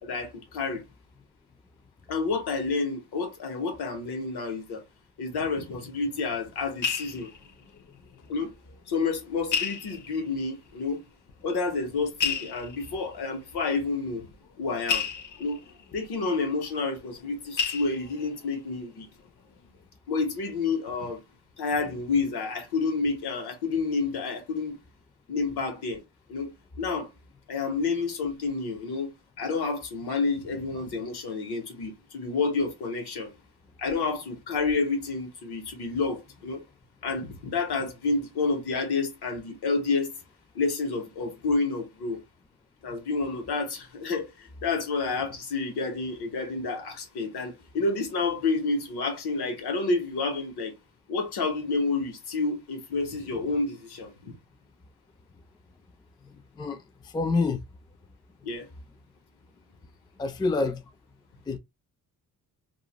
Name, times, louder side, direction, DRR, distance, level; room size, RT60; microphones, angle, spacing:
voice 1, 0.0-0.8 2.1-4.8 5.2-7.3 8.3-8.5 8.9-11.0 11.4-14.2 14.6-15.1 15.4-15.6 15.9-19.1 20.1-21.2 21.6-24.8 25.3-26.0 26.3-27.1 27.5-33.3 33.8-36.6 37.0-40.1 40.5-42.2 42.8-50.7 51.1-54.3 58.4-58.7, left 4 dB, 80° left, 1.0 m, -29 dB
sound 1, 6.1-8.5 8.7-8.8 9.5-10.5 11.3-11.4 12.1-17.3 17.6-18.5 19.0-19.3 19.5-19.7, left 6 dB, 55° left, 0.6 m, -33 dB
voice 2, 56.6-57.6 60.2-60.8 61.5-61.6, left 3 dB, 10° left, 0.3 m, -27 dB
2.5 x 2.0 x 2.9 m
cardioid pair, 100°, 38 cm